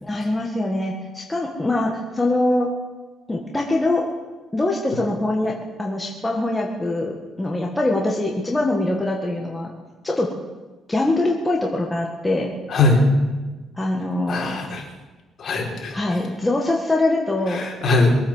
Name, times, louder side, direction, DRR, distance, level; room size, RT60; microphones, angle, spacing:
voice 1, 0.0-2.7 3.3-4.0 4.5-9.7 10.0-10.3 10.9-12.5 13.8-14.6 15.9-17.7, left 2 dB, 10° left, -1 dB, 1.8 m, -23 dB
voice 2, 12.7-13.0 14.3-14.8 15.4-15.9 17.5-18.2, left 3 dB, 45° left, 0 dB, 4.1 m, -20 dB
22.5 x 8.6 x 7.3 m, 1.2 s
cardioid pair, 125°, 0 cm